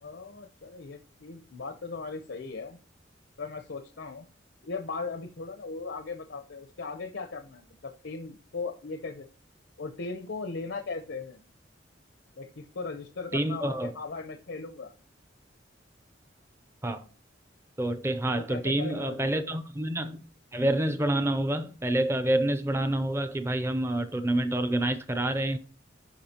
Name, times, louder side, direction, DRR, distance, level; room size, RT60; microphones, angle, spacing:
voice 1, 0.0-2.8 3.4-4.3 4.6-9.3 9.8-11.4 12.4-14.9 18.3-19.6, left 4 dB, 80° left, 0.8 m, -38 dB
voice 2, 13.3-13.9 16.8-17.0 17.8-20.2 20.5-25.6, right 1 dB, 15° right, 0.5 m, -28 dB
12.5 x 5.0 x 2.9 m
head